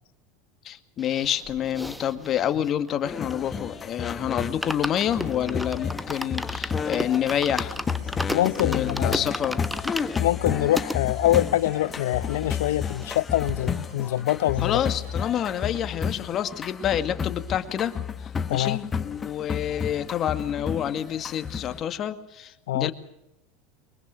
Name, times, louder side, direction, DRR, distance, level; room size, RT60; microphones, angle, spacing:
voice 1, 0.6-7.8 8.6-9.6 14.6-22.9, left 10 dB, 40° left, 2.1 m, -28 dB
sound 1, 1.0-3.8 4.1-4.2 4.4-11.0 11.6-11.7 11.8-11.9 12.2-13.2 13.5-13.6, left 1 dB, ahead, 1.1 m, -34 dB
sound 2, 3.0-21.8, left 6 dB, 25° left, 1.4 m, -32 dB
sound 3, 4.8-17.0, right 4 dB, 80° right, 6.2 m, -51 dB
voice 2, 8.3-9.2 10.2-14.8 18.5-18.8 22.7-22.9, left 14 dB, 80° left, 0.8 m, -24 dB
23.5 x 22.0 x 6.6 m
hypercardioid pair, 100°, 0 cm